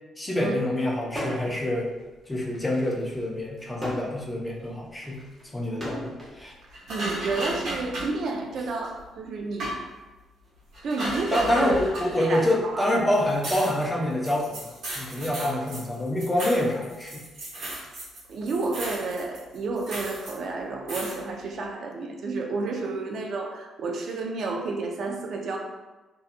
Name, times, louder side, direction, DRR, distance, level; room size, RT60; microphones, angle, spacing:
voice 1, 0.2-1.9 2.3-5.2 5.5-6.5 11.3-14.7 15.0-17.2, left 1 dB, 10° left, -2 dB, 0.4 m, -26 dB
sound 1, 1.1-1.6 2.0-6.4 7.3-8.9, equal, 15° right, 1.0 m, -38 dB
sound 2, 6.7-8.2 9.0-9.1 9.6-9.9 10.7-12.5 12.9-13.0 13.1-18.2 18.5-20.4 20.9-21.2, right 1 dB, 75° right, 1.0 m, -35 dB
voice 2, 6.9-9.7 10.8-11.8 12.2-12.9 15.4-15.6 18.3-25.6, right 3 dB, 55° right, 2 dB, 0.4 m, -31 dB
2.7 x 2.3 x 2.4 m, 1.2 s
cardioid pair, 125°, 0 cm